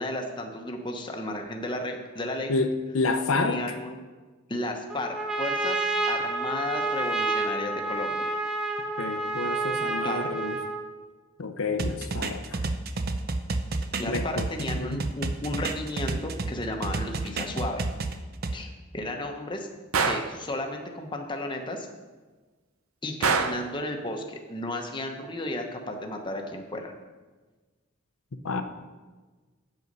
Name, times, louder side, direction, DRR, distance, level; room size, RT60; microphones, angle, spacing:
voice 1, 0.0-2.5 3.3-4.0 4.5-5.8 6.1-8.4 10.0-10.3 14.0-17.8 18.5-19.7 20.0-21.9 23.0-26.9, left 1 dB, 25° left, 3 dB, 0.9 m, -33 dB
voice 2, 2.5-3.6 9.0-10.6 11.4-12.6 14.1-14.4 14.7-15.0 28.4-28.6, left 3 dB, 85° left, 7 dB, 0.7 m, -29 dB
Trumpet, 4.9-10.9, right 2 dB, 5° right, 1.1 m, -29 dB
sound 1, 11.8-16.5 16.8-18.5, right 3 dB, 45° right, 0.6 m, -30 dB
Gunshot gunfire, 19.9-20.4 23.2-23.7, right 5 dB, 85° right, 0.7 m, -24 dB
8.0 x 7.7 x 5.4 m, 1.3 s
head